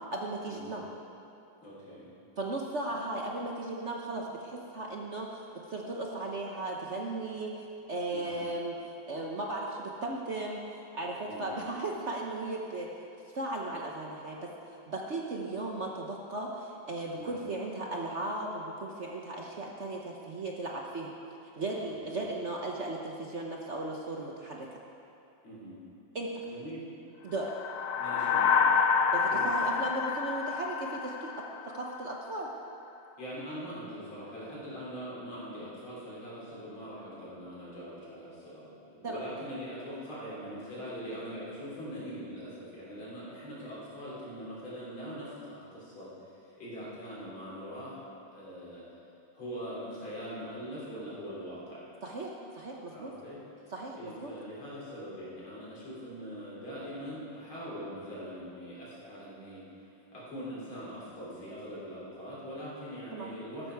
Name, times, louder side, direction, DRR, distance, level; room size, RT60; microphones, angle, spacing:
voice 1, 0.1-0.8 2.4-5.4 5.7-12.9 13.3-21.1 21.5-24.8 26.1-26.3 27.2-27.5 29.1-31.3 31.6-32.5 39.0-39.2 52.0-53.1 53.7-54.3 63.1-63.3, right 2 dB, 45° right, -1 dB, 0.9 m, -36 dB
voice 2, 1.6-2.1 8.1-8.4 11.2-11.5 17.1-17.4 22.0-22.3 25.4-25.8 26.5-26.9 27.9-28.5 29.3-29.7 33.2-46.1 46.6-48.8 49.3-51.9 52.9-53.4 53.9-59.6 60.1-63.7, equal, 90° left, -7 dB, 4.6 m, -42 dB
sound 1, 27.4-32.0, left 6 dB, 75° left, 0.9 m, -28 dB
13.5 x 12.5 x 4.7 m, 2.7 s
omnidirectional pair, 2.2 m